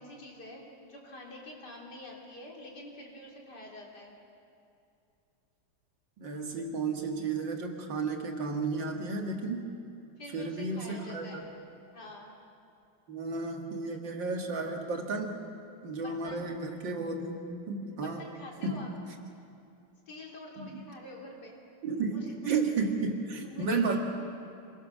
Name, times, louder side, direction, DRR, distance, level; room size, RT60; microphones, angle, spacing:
voice 1, 0.0-4.1 10.2-11.5 11.9-12.3 16.0-16.4 17.9-18.9 20.1-21.7 22.1-22.3 23.4-24.0, left 1 dB, 60° left, -2 dB, 3.9 m, -46 dB
voice 2, 6.2-9.7 10.3-11.4 13.1-15.3 15.8-18.2 18.6-18.9 20.6-20.8 21.8-24.0, right 4 dB, 75° right, 2 dB, 2.6 m, -33 dB
27.0 x 21.0 x 6.3 m, 2.6 s
omnidirectional pair, 2.0 m